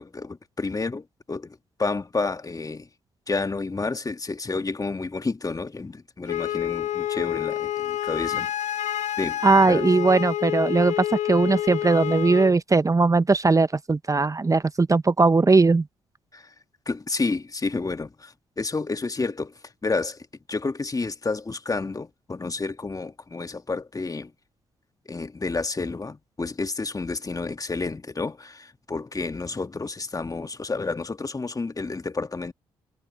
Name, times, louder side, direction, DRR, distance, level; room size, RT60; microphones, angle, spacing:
voice 1, 0.0-2.9 3.3-8.5 9.2-9.9 16.3-16.5 16.8-19.5 19.8-24.3 25.0-32.5, left 3 dB, 25° left, 1.7 m, -30 dB
Wind instrument woodwind instrument, 6.3-12.5, left 12 dB, 65° left, 1.4 m, -28 dB
voice 2, 9.4-15.9, right 3 dB, 25° right, 1.0 m, -19 dB
hypercardioid pair, 45°, 13 cm